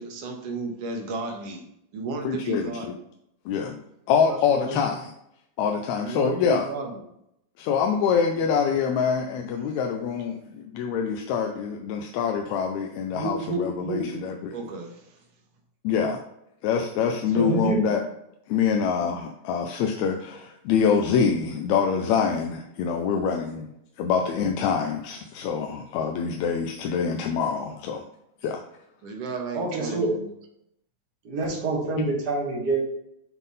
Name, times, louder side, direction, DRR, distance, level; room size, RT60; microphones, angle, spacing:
voice 1, 0.0-1.6 1.9-3.0 6.0-7.0 13.1-14.2 14.5-15.2 29.0-30.3, right 2 dB, 65° right, 3 dB, 1.9 m, -33 dB
voice 2, 2.3-2.7 3.5-3.8 4.1-5.1 5.6-6.7 7.6-14.6 15.8-16.2 16.6-18.0 18.5-23.7 24.0-28.0 28.4-28.6, left 6 dB, 80° left, 3 dB, 1.8 m, -25 dB
voice 3, 4.2-4.8 17.3-17.8 29.5-30.1 31.2-32.8, right 3 dB, 45° right, -1 dB, 1.5 m, -26 dB
7.2 x 3.9 x 4.0 m, 0.79 s
omnidirectional pair, 3.4 m